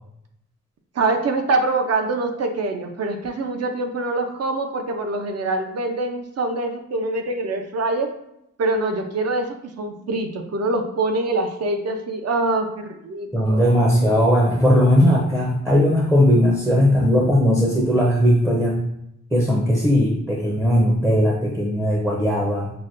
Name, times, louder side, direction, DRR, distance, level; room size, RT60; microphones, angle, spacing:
voice 1, 1.0-8.1 8.6-9.5 9.8-13.9, right 2 dB, 55° right, 4 dB, 0.6 m, -24 dB
voice 2, 13.3-18.8 19.3-22.7, equal, 10° right, -1 dB, 0.5 m, -18 dB
5.8 x 2.2 x 2.5 m, 0.79 s
wide cardioid pair, 120°, 30 cm